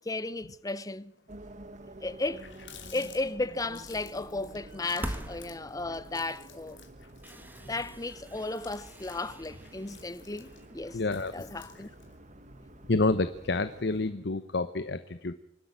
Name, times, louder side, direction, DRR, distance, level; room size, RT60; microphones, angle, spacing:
voice 1, 0.1-1.1 2.0-2.5 2.9-6.8 7.6-11.0 11.3-11.9, left 2 dB, 20° left, 0.8 m, -34 dB
sound 1, 1.3-14.1, right 1 dB, 40° right, 1.5 m, -50 dB
Water tap faucet, 2.1-12.2, left 7 dB, 90° left, 3.0 m, -54 dB
sound 2, 4.6-6.1 6.6-6.7 7.2-11.0, right 1 dB, 10° right, 1.7 m, -44 dB
voice 2, 10.9-11.3 12.9-15.3, left 3 dB, 65° left, 0.9 m, -28 dB
25.5 x 12.5 x 8.7 m
head